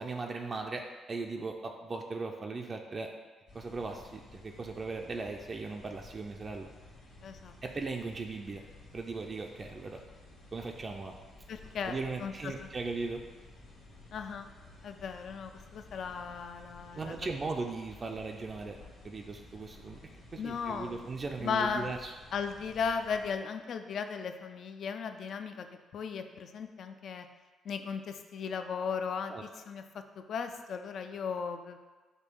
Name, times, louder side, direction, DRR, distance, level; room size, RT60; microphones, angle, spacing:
voice 1, 0.0-3.1 3.5-6.7 7.6-8.6 8.9-10.0 10.5-11.1 11.9-13.2 16.9-18.8 19.0-20.0 20.3-22.1 29.3-29.4, right 3 dB, 35° right, 2 dB, 0.3 m, -38 dB
sound 1, 3.5-23.4, left 2 dB, 80° left, 1.4 m, -54 dB
voice 2, 7.2-7.5 11.5-12.7 14.1-14.5 14.8-17.1 20.4-21.1 21.4-21.9 22.3-25.7 25.9-27.3 27.6-31.8, left 6 dB, 60° left, 7 dB, 0.3 m, -36 dB
5.1 x 2.2 x 4.5 m, 1.3 s
cardioid pair, 90°, 0 cm